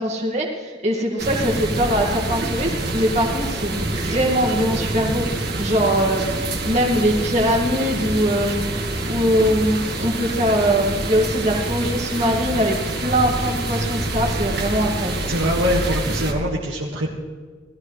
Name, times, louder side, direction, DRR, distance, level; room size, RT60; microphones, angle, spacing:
voice 1, 0.0-6.4 6.7-15.2, equal, 35° right, -1 dB, 2.0 m, -22 dB
sound 1, 1.2-16.3, right 2 dB, 55° right, 1.9 m, -26 dB
voice 2, 15.3-17.1, equal, 90° right, -4 dB, 1.9 m, -23 dB
18.5 x 14.0 x 3.2 m, 1.5 s
head